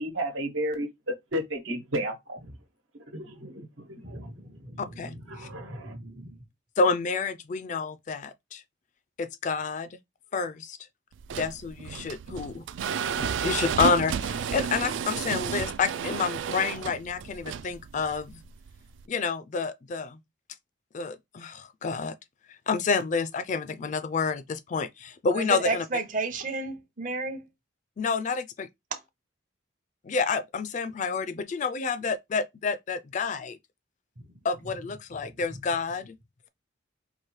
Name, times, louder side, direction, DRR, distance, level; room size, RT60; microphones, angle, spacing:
voice 1, 0.0-2.6 3.1-4.3 5.3-5.9, equal, 85° right, 1.2 m, -33 dB
voice 2, 4.0-6.3 25.3-27.4 28.9-29.0, right 3 dB, 40° right, 0.7 m, -34 dB
voice 3, 4.8-5.5 6.8-8.6 9.2-9.9 10.3-10.8 11.4-12.6 13.2-18.4 19.1-20.2 20.9-22.1 22.7-25.8 28.0-28.7 30.0-33.6 34.4-36.2, left 4 dB, 40° left, 0.3 m, -29 dB
sound 1, 11.1-19.0, right 7 dB, 70° right, 0.3 m, -32 dB
4.6 x 2.6 x 3.1 m
head